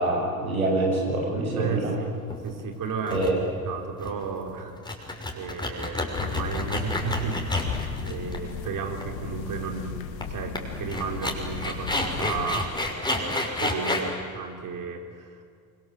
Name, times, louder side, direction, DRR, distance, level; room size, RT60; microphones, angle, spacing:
voice 1, 0.0-1.9 3.1-3.3, right 2 dB, 90° right, -1 dB, 7.2 m, -25 dB
voice 2, 1.6-2.1 2.4-3.3 3.6-4.8 5.3-7.4 8.0-12.7 13.0-15.4, right 6 dB, 50° right, 4 dB, 4.6 m, -34 dB
sound 1, 2.3-2.6 3.1-3.3 3.6-3.7 4.0-4.3 4.7-8.7 9.0-9.1 10.2-10.3 10.6-10.7 10.9-14.1, left 2 dB, 10° left, 6.0 m, -30 dB
sound 2, 6.1-12.8, left 7 dB, 75° left, 2.1 m, -36 dB
27.0 x 26.0 x 8.0 m, 2.2 s
hypercardioid pair, 60°, 42 cm